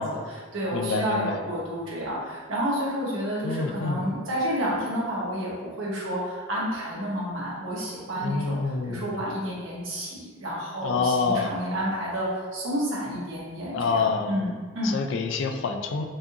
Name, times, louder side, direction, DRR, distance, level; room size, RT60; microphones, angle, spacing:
voice 1, 0.0-15.0, equal, 70° right, -6 dB, 1.2 m, -30 dB
voice 2, 0.7-1.4 3.4-4.0 8.2-9.1 10.8-11.5 13.7-14.3 14.8-16.0, left 4 dB, 60° left, 5 dB, 0.3 m, -27 dB
4.7 x 2.5 x 2.7 m, 1.5 s
head